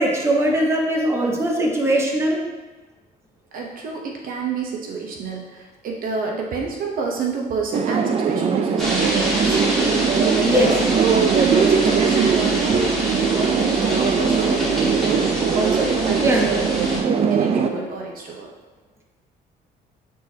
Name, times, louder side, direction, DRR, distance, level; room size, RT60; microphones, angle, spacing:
voice 1, 0.0-2.4 10.4-10.8 15.6-15.8 16.2-16.5, right 1 dB, 15° right, -1 dB, 1.1 m, -20 dB
voice 2, 3.5-9.8 10.3-15.2 15.5-18.5, right 4 dB, 55° right, 0 dB, 0.9 m, -29 dB
sound 1, 7.7-17.7, right 6 dB, 35° right, 0.5 m, -20 dB
sound 2, 8.8-17.0, equal, ahead, 1.9 m, -27 dB
9.1 x 4.1 x 2.8 m, 1.2 s
cardioid pair, 110°, 17 cm